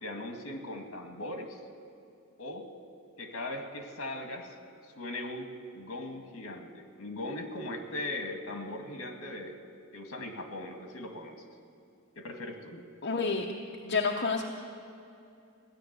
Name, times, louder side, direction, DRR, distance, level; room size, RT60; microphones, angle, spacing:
voice 1, 0.0-1.6 2.4-2.7 3.2-4.6 4.8-5.5 5.7-9.6 9.9-11.4 12.2-12.8, left 1 dB, 65° left, 4 dB, 1.8 m, -39 dB
voice 2, 13.0-13.5 13.8-14.5, left 4 dB, 50° left, 0 dB, 0.9 m, -29 dB
17.0 x 10.5 x 8.0 m, 2.6 s
head